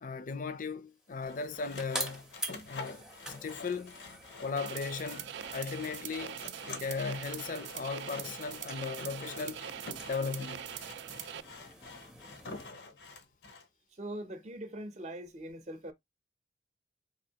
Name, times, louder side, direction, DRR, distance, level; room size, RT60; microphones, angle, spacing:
voice 1, 0.0-2.3 2.7-3.0 3.4-4.0 4.4-6.4 6.7-9.7 10.0-10.7, left 5 dB, 50° left, 0.5 m, -37 dB
sound 1, 1.0-12.7, right 1 dB, 5° right, 0.6 m, -46 dB
Sawing, 1.2-13.7, left 3 dB, 85° left, 0.8 m, -48 dB
sound 2, 4.6-11.4, right 10 dB, 80° right, 0.3 m, -43 dB
voice 2, 14.0-15.9, right 1 dB, 40° right, 0.6 m, -41 dB
4.2 x 2.7 x 2.8 m
head